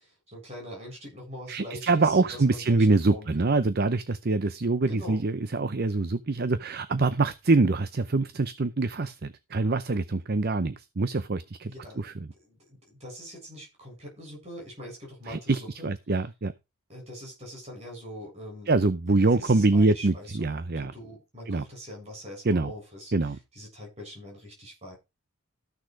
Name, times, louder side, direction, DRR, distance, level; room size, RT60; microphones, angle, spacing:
voice 1, 0.3-3.5 4.9-5.2 11.7-15.9 16.9-18.7 19.1-23.1 23.5-25.0, equal, 30° right, 7.6 m, -43 dB
voice 2, 1.5-11.7 12.0-12.1 15.3-16.5 18.7-20.9 21.5-21.6 22.5-22.7 23.1-23.4, right 3 dB, 45° right, 0.6 m, -25 dB
14.0 x 6.5 x 4.8 m
head